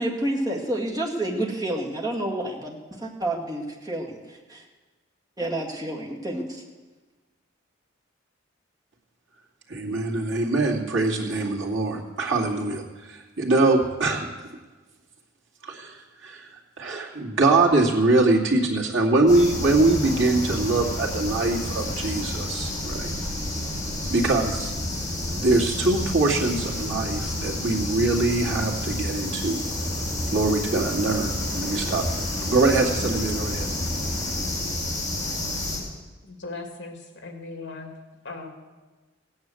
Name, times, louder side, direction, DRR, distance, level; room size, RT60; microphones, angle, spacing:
voice 1, 0.0-4.2 4.5-4.6 5.4-6.6, right 1 dB, 20° right, -2 dB, 2.1 m, -29 dB
voice 2, 9.7-14.5 15.6-16.5 16.8-23.1 24.1-24.7 25.3-29.6 30.3-32.0 32.5-33.7, right 2 dB, 65° right, -2 dB, 2.5 m, -23 dB
sound 1, 19.3-35.8, left 1 dB, 20° left, 4.0 m, -29 dB
voice 3, 36.2-38.0 38.2-38.5, left 3 dB, 60° left, 4 dB, 2.4 m, -38 dB
16.5 x 9.5 x 7.8 m, 1.3 s
head